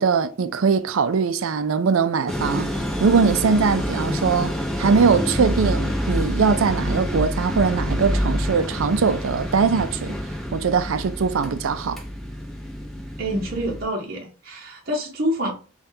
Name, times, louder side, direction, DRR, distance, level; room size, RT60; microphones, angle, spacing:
voice 1, 0.0-2.7 3.0-10.2 10.5-12.0, right 5 dB, 75° right, 0.4 m, -21 dB
sound 1, 2.3-13.8, equal, ahead, 0.6 m, -27 dB
voice 2, 13.2-15.5, equal, 45° right, 0.9 m, -27 dB
5.1 x 2.3 x 2.7 m
head